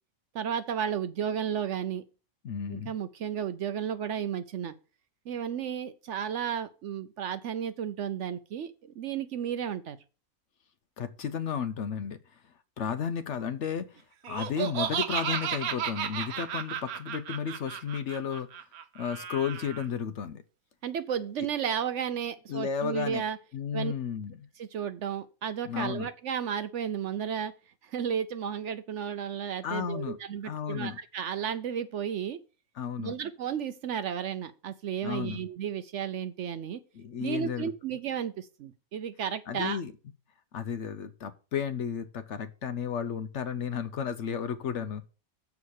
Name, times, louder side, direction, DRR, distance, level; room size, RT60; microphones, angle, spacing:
voice 1, 0.3-2.0 2.7-4.7 5.3-10.0 20.8-23.4 23.7-23.9 24.6-27.5 27.8-32.4 33.0-36.8 37.2-39.8, right 8 dB, 65° right, 0.8 m, -33 dB
voice 2, 2.4-2.9 11.0-12.2 12.8-13.9 14.3-18.5 18.9-20.4 22.5-23.2 23.5-24.4 25.6-26.1 29.6-30.2 30.4-31.0 32.8-33.1 35.0-35.4 36.9-37.7 39.5-39.9 40.5-45.1, left 7 dB, 60° left, 0.9 m, -33 dB
Laughter, 14.2-19.8, right 9 dB, 90° right, 1.2 m, -34 dB
7.1 x 4.7 x 6.4 m
omnidirectional pair, 1.5 m